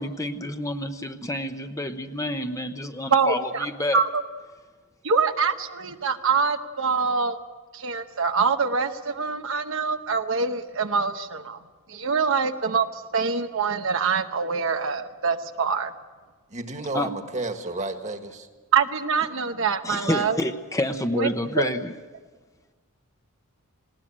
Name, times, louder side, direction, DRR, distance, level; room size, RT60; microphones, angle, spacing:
voice 1, 0.0-4.0 16.9-17.1 19.8-21.9, left 1 dB, 15° left, 6 dB, 0.9 m, -28 dB
voice 2, 3.1-3.7 3.9-4.2 5.0-7.4 7.7-11.6 11.9-15.9 18.7-20.4 21.2-21.3 21.6-21.7, right 5 dB, 65° right, 7 dB, 0.9 m, -24 dB
voice 3, 16.5-18.5, right 2 dB, 35° right, 6 dB, 1.7 m, -32 dB
20.0 x 18.0 x 8.6 m, 1.3 s
head